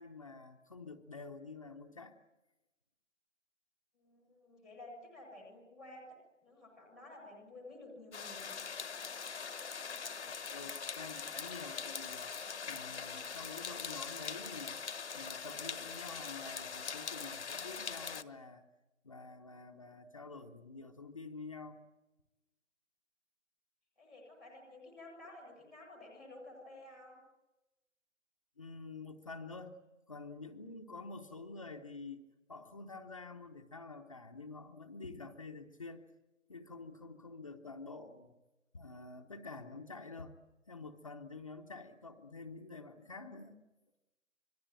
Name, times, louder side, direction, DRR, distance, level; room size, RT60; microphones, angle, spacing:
voice 1, 0.0-2.1 9.9-12.3 12.7-14.8 15.1-18.6 19.0-21.8 28.6-29.7 30.1-32.2 32.5-36.0 36.5-38.4 38.7-40.3 40.7-43.6, left 3 dB, 25° left, 2 dB, 0.9 m, -48 dB
voice 2, 3.9-8.6 24.0-27.2, left 2 dB, ahead, 0 dB, 1.1 m, -53 dB
sound 1, 8.1-18.2, left 6 dB, 60° left, 1.2 m, -42 dB
25.5 x 21.0 x 8.9 m, 1.0 s
hypercardioid pair, 170°, 38 cm